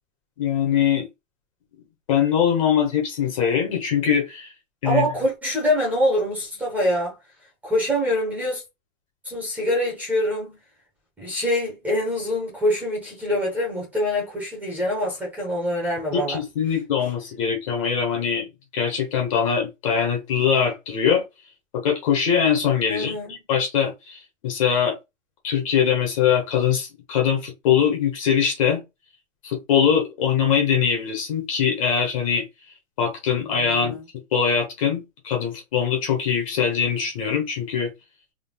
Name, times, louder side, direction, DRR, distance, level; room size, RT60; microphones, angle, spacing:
voice 1, 0.4-1.1 2.1-4.5 4.8-5.0 16.1-18.5 18.7-21.2 21.7-24.9 25.4-28.8 29.4-32.5 33.0-34.0 34.3-37.9, left 7 dB, 25° left, 1.0 m, -22 dB
voice 2, 4.8-7.2 7.6-8.6 9.2-10.6 11.2-16.4 22.9-23.4 33.5-34.0, equal, 5° right, 1.0 m, -25 dB
3.7 x 3.4 x 2.3 m
hypercardioid pair, 175°, 41 cm